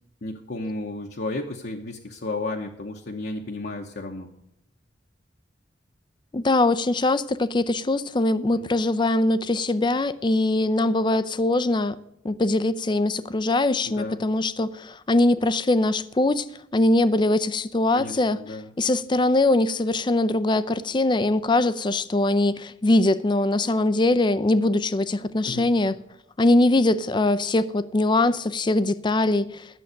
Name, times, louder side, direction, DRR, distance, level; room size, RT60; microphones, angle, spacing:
voice 1, 0.2-4.3 8.6-8.7 13.9-14.2 17.9-18.7 25.5-25.7, left 2 dB, 60° left, 0.9 m, -33 dB
voice 2, 6.3-12.0 12.2-16.5 16.7-18.4 18.8-26.0 26.4-29.7, left 2 dB, 25° left, 0.5 m, -22 dB
11.0 x 7.1 x 6.4 m
head